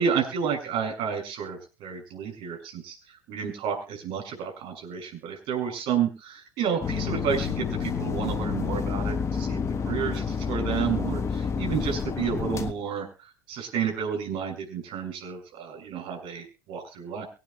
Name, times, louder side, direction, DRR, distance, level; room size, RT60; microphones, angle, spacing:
voice 1, 0.0-3.0 3.3-9.6 9.8-13.1 13.5-17.2, right 7 dB, 55° right, 3 dB, 6.8 m, -30 dB
sound 1, 6.8-12.7, left 6 dB, 30° left, 1.3 m, -29 dB
24.0 x 9.9 x 2.4 m, 0.33 s
hypercardioid pair, 75°, 10 cm